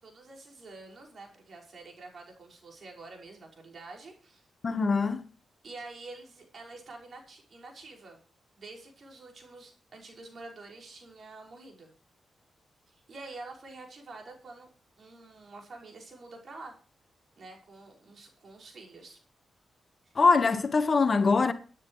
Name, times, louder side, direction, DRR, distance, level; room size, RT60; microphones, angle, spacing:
voice 1, 0.0-4.4 5.6-8.2 8.6-11.9 12.9-14.7 15.0-16.7 17.4-19.2, right 3 dB, 55° right, 5.6 m, -47 dB
voice 2, 4.6-5.2 20.2-21.5, left 4 dB, 45° left, 1.2 m, -23 dB
23.5 x 9.7 x 3.1 m
cardioid pair, 75°, 0 cm